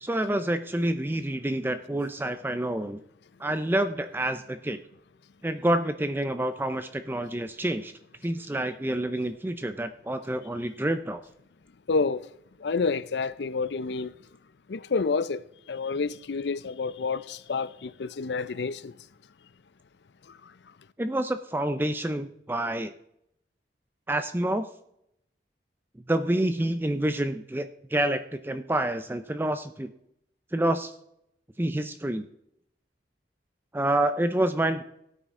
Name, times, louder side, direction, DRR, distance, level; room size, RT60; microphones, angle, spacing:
voice 1, 0.0-3.0 3.4-4.8 5.4-7.9 8.2-11.2 21.0-22.9 24.1-24.7 26.1-29.9 30.5-30.9 31.6-32.3 33.7-34.8, right 1 dB, 10° right, 0.5 m, -28 dB
voice 2, 11.9-12.2 12.6-14.1 14.7-15.4 15.7-18.9, left 4 dB, 75° left, 0.5 m, -29 dB
16.5 x 9.1 x 3.7 m
head